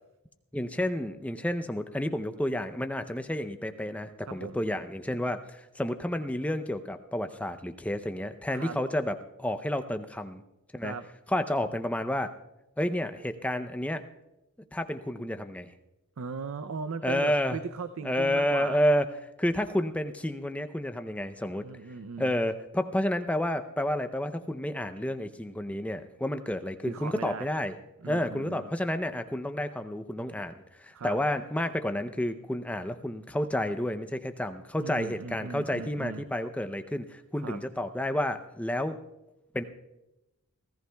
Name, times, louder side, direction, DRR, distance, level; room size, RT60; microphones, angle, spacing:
voice 1, 0.5-10.4 10.7-11.0 11.3-12.3 12.8-14.0 14.7-15.7 17.0-17.6 18.0-19.1 19.4-21.7 22.2-27.8 28.1-39.0 39.5-39.6, left 1 dB, 5° left, 8 dB, 0.5 m, -30 dB
voice 2, 4.3-4.6 8.5-8.8 10.8-11.0 16.2-18.8 21.6-22.3 26.8-27.5 28.0-28.7 30.9-31.2 34.8-36.3 37.4-37.6, right 5 dB, 65° right, 10 dB, 0.5 m, -38 dB
29.0 x 14.5 x 2.3 m, 0.95 s
head